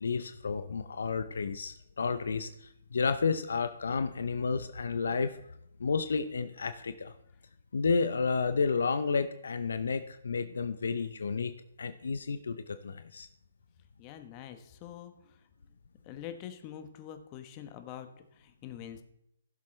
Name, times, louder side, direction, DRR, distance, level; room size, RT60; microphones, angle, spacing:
voice 1, 0.0-5.4 5.8-7.1 7.7-11.5 11.8-13.3, left 5 dB, 70° left, 11 dB, 0.6 m, -31 dB
voice 2, 14.0-15.4 16.0-19.0, left 10 dB, 30° left, 8 dB, 1.1 m, -45 dB
16.0 x 7.2 x 3.3 m, 0.79 s
figure-of-eight pair, 135°, 0 cm